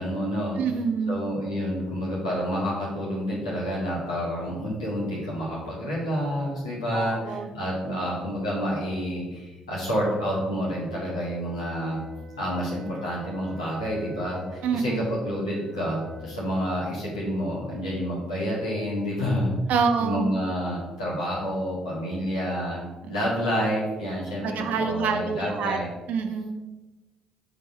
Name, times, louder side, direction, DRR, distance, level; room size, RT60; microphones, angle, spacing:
voice 1, 0.0-0.6 1.1-12.0 12.4-19.5 20.0-25.9, equal, 80° left, -6 dB, 1.5 m, -29 dB
voice 2, 0.6-1.2 6.9-7.5 7.9-8.1 14.6-15.2 19.7-20.3 23.0-23.2 24.4-25.8 26.1-26.5, right 5 dB, 60° right, 6 dB, 0.7 m, -27 dB
Wind instrument woodwind instrument, 11.0-16.5, left 4 dB, 40° left, 1.8 m, -48 dB
6.8 x 3.5 x 4.2 m, 1.1 s
figure-of-eight pair, 45°, 3 cm